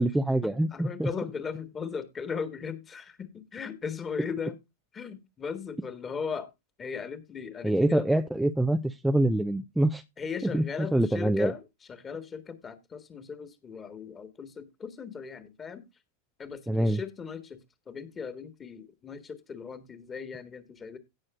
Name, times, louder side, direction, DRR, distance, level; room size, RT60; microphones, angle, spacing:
voice 1, 0.0-1.1 7.6-10.0 10.4-11.5 16.7-17.0, right 1 dB, 5° right, 0.5 m, -25 dB
voice 2, 0.7-4.6 4.9-6.5 6.8-8.0 10.2-11.6 11.9-15.8 16.4-17.6 17.9-21.0, left 6 dB, 20° left, 1.8 m, -37 dB
17.0 x 6.4 x 2.5 m
figure-of-eight pair, 90°, 0 cm